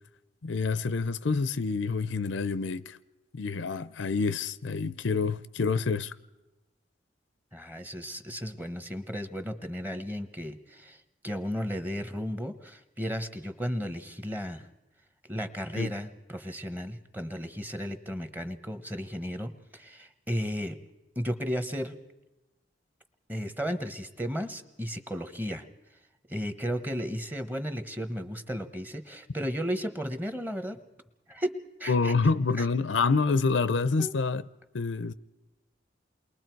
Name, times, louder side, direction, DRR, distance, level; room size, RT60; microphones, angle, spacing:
voice 1, 0.4-3.0 3.3-6.1 15.8-15.9 31.9-34.4 34.7-35.1, left 4 dB, 80° left, 0.6 m, -27 dB
voice 2, 7.5-11.0 11.2-14.7 15.3-20.8 21.2-21.9 23.3-25.6 26.3-30.8 31.3-31.5 31.8-32.1 32.6-32.7 34.0-34.1, equal, 10° right, 1.0 m, -34 dB
28.5 x 21.5 x 4.6 m
head